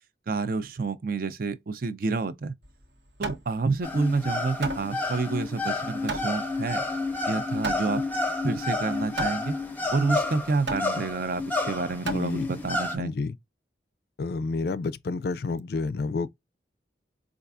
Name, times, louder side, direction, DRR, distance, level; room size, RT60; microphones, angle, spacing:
voice 1, 0.3-2.6 3.2-6.8 7.3-8.0 8.4-9.5 9.9-13.1, right 3 dB, 50° right, 0.5 m, -29 dB
Hammer, 2.6-12.8, right 3 dB, 70° right, 0.9 m, -38 dB
sound 1, 3.8-13.0, left 2 dB, 10° left, 0.6 m, -30 dB
voice 2, 12.1-12.5 13.0-13.3 14.2-16.3, left 3 dB, 55° left, 0.4 m, -29 dB
4.5 x 2.4 x 2.4 m
head